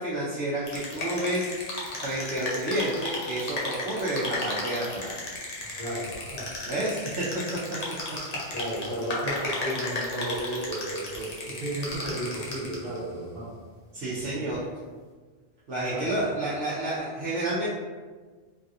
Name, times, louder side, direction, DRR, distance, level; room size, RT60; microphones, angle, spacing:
voice 1, 0.0-1.5 2.0-5.3 5.6-5.7 6.7-7.3 7.5-7.6 8.1-8.2 13.9-14.6 15.7-17.7, right 1 dB, 80° right, -10 dB, 1.0 m, -30 dB
sound 1, 0.6-13.0, left 2 dB, 45° left, 0.6 m, -34 dB
voice 2, 5.7-6.6 8.5-13.5 14.4-14.5 15.9-16.2, right 1 dB, 60° right, -8 dB, 1.4 m, -33 dB
3.2 x 2.4 x 2.6 m, 1.4 s
omnidirectional pair, 1.1 m